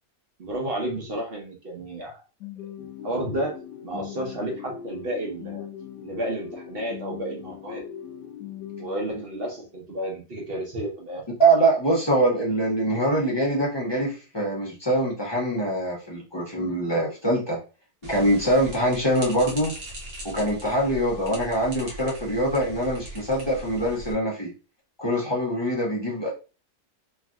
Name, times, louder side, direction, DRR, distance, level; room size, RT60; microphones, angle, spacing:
voice 1, 0.4-2.1 2.8-3.6 3.8-5.6 6.0-7.8 8.8-11.2, right 1 dB, 50° right, -1 dB, 0.8 m, -31 dB
sound 1, 2.4-9.6, left 9 dB, 85° left, 1.2 m, -40 dB
voice 2, 11.4-17.6 18.1-19.7 20.3-24.5 25.0-26.3, right 1 dB, 45° left, -5 dB, 0.3 m, -23 dB
sound 2, 18.0-24.1, right 1 dB, 65° right, 1.3 m, -40 dB
3.2 x 2.6 x 2.2 m, 0.33 s
omnidirectional pair, 1.7 m